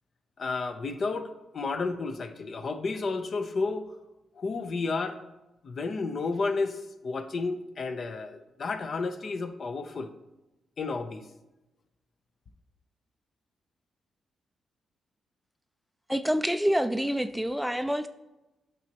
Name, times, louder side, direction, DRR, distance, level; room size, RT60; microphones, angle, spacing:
voice 1, 0.4-3.9 4.4-5.2 5.6-10.1 10.8-11.2, left 4 dB, 55° left, 8 dB, 0.6 m, -32 dB
voice 2, 16.1-18.1, equal, 5° right, 10 dB, 0.3 m, -27 dB
9.0 x 6.1 x 2.9 m, 1.0 s
cardioid pair, 75°, 0 cm